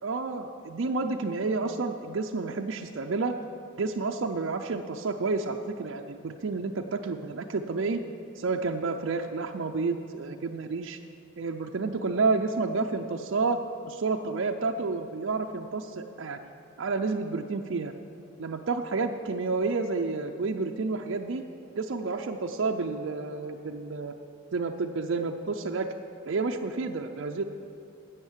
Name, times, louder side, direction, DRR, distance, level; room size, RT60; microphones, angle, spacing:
voice 1, 0.0-3.3 3.8-8.0 8.4-11.0 11.4-13.6 13.8-16.5 16.8-17.9 18.4-21.4 21.8-24.1 24.5-25.9 26.3-27.4, right 4 dB, 65° right, 2 dB, 0.5 m, -30 dB
12.0 x 7.9 x 7.3 m, 2.8 s
head